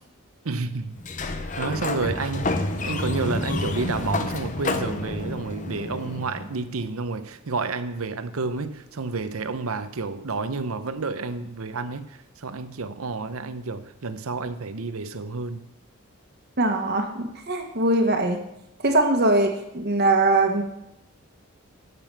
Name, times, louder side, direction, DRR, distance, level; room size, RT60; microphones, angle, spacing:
voice 1, 0.4-1.0 1.4-15.7, right 3 dB, 75° right, 0.8 m, -30 dB
Sliding door, 1.0-6.6, left 2 dB, 35° left, 0.7 m, -29 dB
voice 2, 16.6-18.4 18.8-20.6, right 2 dB, 50° right, 1.4 m, -21 dB
9.1 x 6.9 x 6.7 m
head